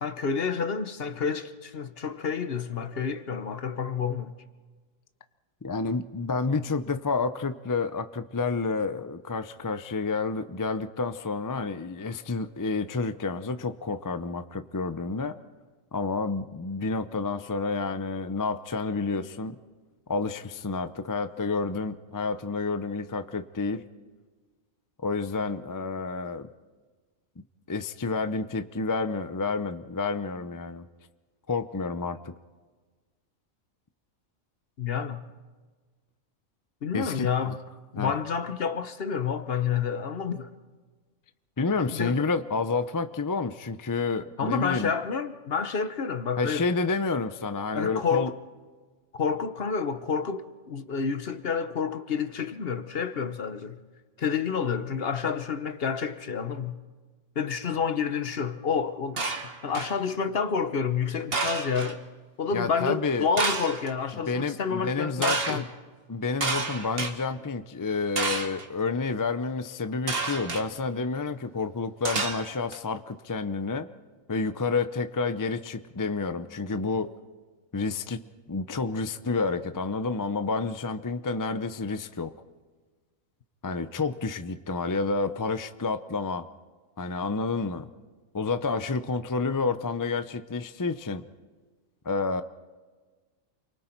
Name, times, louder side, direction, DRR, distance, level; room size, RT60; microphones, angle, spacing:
voice 1, 0.0-4.4 34.8-35.2 36.8-37.6 37.9-40.5 41.9-42.3 44.4-46.7 47.7-48.3 49.1-53.8 54.2-56.8 57.3-59.2 59.6-62.0 62.4-65.6, left 6 dB, 50° left, 1.1 m, -29 dB
voice 2, 5.6-15.4 15.9-19.6 20.1-23.8 25.0-26.5 27.7-30.8 31.5-32.3 36.9-37.6 38.0-38.1 41.6-44.9 46.4-48.3 62.5-63.3 64.3-65.6 66.1-73.9 74.3-77.1 77.7-78.2 78.5-82.3 83.6-86.5 87.0-87.9 88.3-91.2 92.0-92.4, left 4 dB, 30° left, 0.3 m, -29 dB
sound 1, 59.2-60.0 61.3-61.9 63.4-63.9 65.2-65.6 66.4-67.1 68.2-68.6 70.1-70.6 72.0-72.8, right 3 dB, 45° right, 1.7 m, -29 dB
29.5 x 23.5 x 4.5 m
omnidirectional pair, 1.4 m